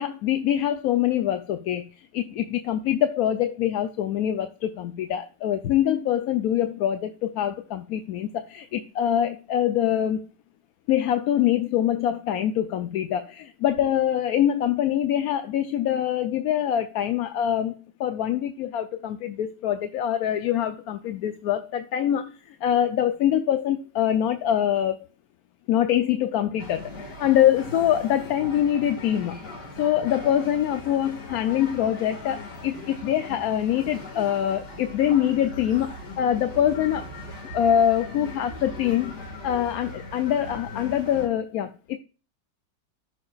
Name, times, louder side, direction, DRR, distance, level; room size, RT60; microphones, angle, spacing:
voice 1, 0.0-10.2 10.9-25.1 25.7-29.4 29.8-37.0 37.5-42.0, left 10 dB, 70° left, 1.1 m, -24 dB
sound 1, 26.6-41.3, left 2 dB, 90° left, 2.4 m, -39 dB
14.0 x 6.4 x 2.4 m
omnidirectional pair, 1.7 m